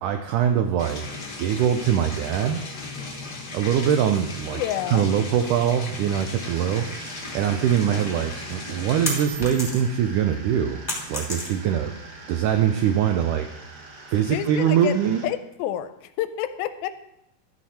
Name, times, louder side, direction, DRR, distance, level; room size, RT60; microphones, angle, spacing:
voice 1, 0.0-1.0 1.4-2.6 3.5-4.6 4.9-6.9 7.3-10.8 11.1-12.0 12.3-13.5 14.1-15.2, right 9 dB, 85° right, 6 dB, 1.8 m, -23 dB
sound 1, 0.8-9.3, left 3 dB, 55° left, 1.1 m, -37 dB
voice 2, 4.5-5.1 14.3-14.9 15.2-15.9 16.2-16.9, left 11 dB, 85° left, 11 dB, 2.4 m, -28 dB
sound 2, 6.4-15.3, right 3 dB, 55° right, 2.0 m, -43 dB
sound 3, 9.0-10.1 10.4-11.9, left 1 dB, 5° left, 2.3 m, -31 dB
12.5 x 8.4 x 4.3 m, 0.85 s
omnidirectional pair, 4.4 m